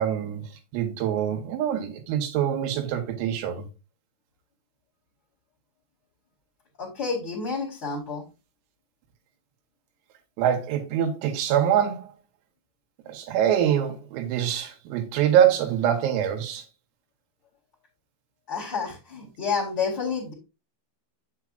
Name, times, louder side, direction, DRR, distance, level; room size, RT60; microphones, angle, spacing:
voice 1, 0.0-3.7 10.4-12.1 13.1-16.7, right 9 dB, 85° right, 4.0 m, -24 dB
voice 2, 6.8-8.2 18.5-20.3, left 5 dB, 40° left, 1.6 m, -29 dB
8.2 x 7.8 x 2.5 m
omnidirectional pair, 5.9 m